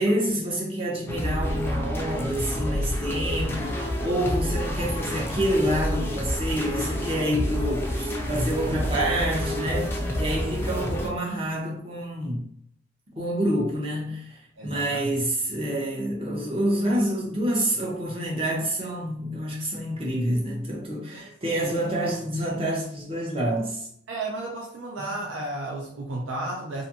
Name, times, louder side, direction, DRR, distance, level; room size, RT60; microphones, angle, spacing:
voice 1, 0.0-12.5 13.2-23.9, right 1 dB, 30° right, 0.7 m, -27 dB
sound 1, 1.1-11.1, equal, 10° left, 0.3 m, -28 dB
voice 2, 14.6-15.1 21.1-21.7 24.1-26.8, right 2 dB, 90° right, 0.5 m, -33 dB
2.5 x 2.5 x 2.7 m
head